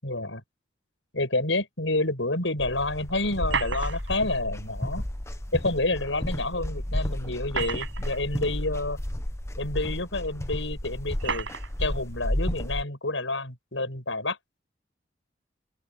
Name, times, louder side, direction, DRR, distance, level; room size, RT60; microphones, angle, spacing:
voice 1, 0.0-0.4 1.1-5.0 5.5-9.0 9.6-11.5 11.8-14.4, left 2 dB, 85° left, 7.8 m, -29 dB
sound 1, 2.6-12.8, left 1 dB, 15° left, 0.9 m, -32 dB
sound 2, 3.4-4.2 5.9-6.0 7.3-8.2 9.1-9.2 10.1-10.2 11.2-11.7, right 5 dB, 90° right, 5.8 m, -31 dB
open air
head